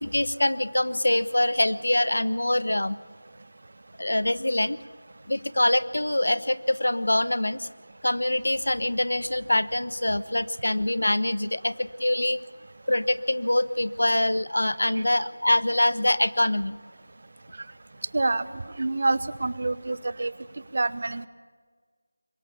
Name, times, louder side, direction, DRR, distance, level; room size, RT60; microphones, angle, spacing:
voice 1, 0.0-2.9 4.0-4.8 5.3-7.7 8.0-12.4 12.9-16.8, left 1 dB, 75° left, 15 dB, 1.0 m, -24 dB
voice 2, 18.1-18.5 18.8-20.3 20.7-21.3, right 2 dB, 50° right, 16 dB, 1.0 m, -26 dB
23.0 x 20.5 x 7.2 m, 1.5 s
figure-of-eight pair, 170°, 0 cm